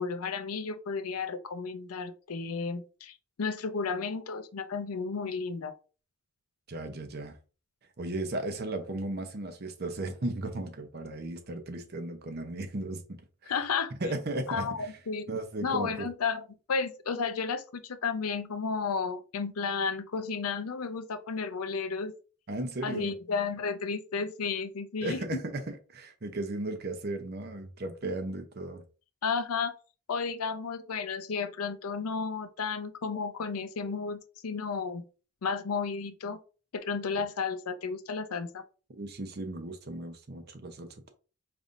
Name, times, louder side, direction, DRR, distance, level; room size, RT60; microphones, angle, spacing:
voice 1, 0.0-5.7 13.5-13.9 14.5-15.3 15.6-22.1 22.8-25.4 29.2-29.7 30.1-35.1 35.4-36.4 36.7-38.6, left 5 dB, 80° left, 0.6 m, -33 dB
voice 2, 6.7-7.4 8.0-13.5 14.0-14.9 15.3-16.1 22.5-23.1 25.0-28.8 38.9-41.1, right 2 dB, 45° right, 0.7 m, -36 dB
5.2 x 3.3 x 2.5 m
head